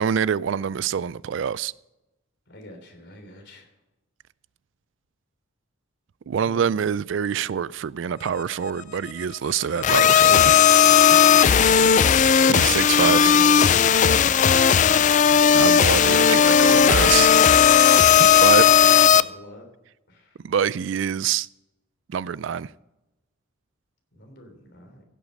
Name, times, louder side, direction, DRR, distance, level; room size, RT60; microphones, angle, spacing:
voice 1, 0.0-1.7 6.3-10.5 12.5-13.2 15.5-17.3 18.2-18.7 20.4-21.5 22.1-22.7, right 7 dB, 65° right, 0.3 m, -25 dB
voice 2, 2.5-3.7 6.4-6.6 11.1-11.4 12.4-13.9 18.1-19.7 20.1-20.3 24.1-25.0, left 1 dB, 55° left, 3.3 m, -39 dB
sound 1, 9.8-19.2, left 8 dB, 35° left, 0.3 m, -16 dB
15.5 x 8.3 x 5.3 m
head